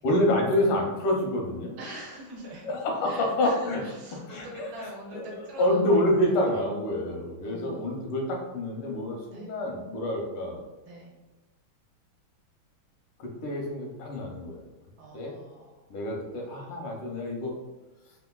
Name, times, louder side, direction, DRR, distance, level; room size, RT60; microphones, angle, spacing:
voice 1, 0.0-1.8 2.6-3.8 4.1-4.7 5.1-10.6 13.2-14.6 15.1-15.3 15.9-17.5, left 1 dB, 85° left, 0 dB, 1.5 m, -27 dB
voice 2, 1.8-2.7 3.0-5.8 6.1-6.6 7.4-8.0 9.3-9.5 10.9-11.1 15.0-16.0, right 1 dB, 75° right, -2 dB, 1.4 m, -44 dB
3.7 x 2.3 x 2.2 m, 1.1 s
omnidirectional pair, 2.3 m